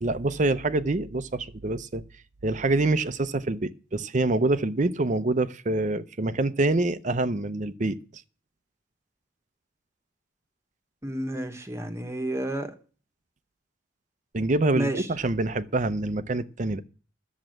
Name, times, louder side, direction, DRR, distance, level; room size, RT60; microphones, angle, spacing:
voice 1, 0.0-2.0 2.4-8.0 14.3-16.8, right 2 dB, 40° right, 0.6 m, -26 dB
voice 2, 11.0-12.7 14.8-15.1, right 1 dB, 15° right, 1.1 m, -30 dB
10.5 x 7.3 x 7.8 m
head